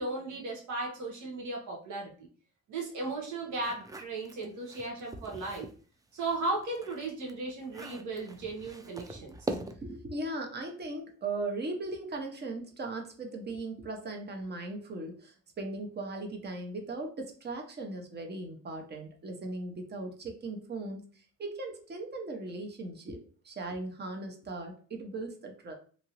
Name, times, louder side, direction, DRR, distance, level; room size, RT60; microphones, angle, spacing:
voice 1, 0.0-2.3 2.7-5.7 6.1-9.3, right 2 dB, 75° right, 0 dB, 1.1 m, -36 dB
sound 1, 3.5-5.8 6.2-10.0, right 2 dB, 10° right, 0.3 m, -42 dB
voice 2, 9.0-25.7, right 2 dB, 35° right, 3 dB, 0.8 m, -38 dB
2.9 x 2.6 x 2.9 m, 0.41 s
cardioid pair, 90°, 30 cm